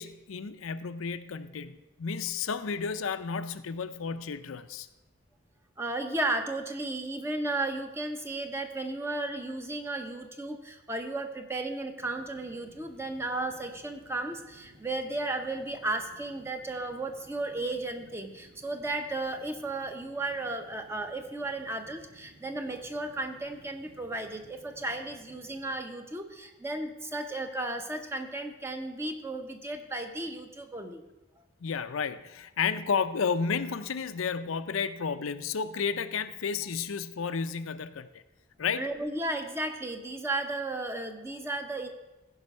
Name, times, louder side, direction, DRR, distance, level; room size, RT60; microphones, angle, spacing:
voice 1, 0.0-4.9 31.6-38.2 38.6-38.9, left 6 dB, 85° left, 11 dB, 0.5 m, -32 dB
voice 2, 5.8-31.0 38.7-41.9, right 2 dB, 10° right, 6 dB, 0.8 m, -34 dB
sound 1, 12.0-25.8, right 1 dB, 60° right, 1.8 m, -57 dB
15.0 x 5.4 x 5.4 m, 1.0 s
head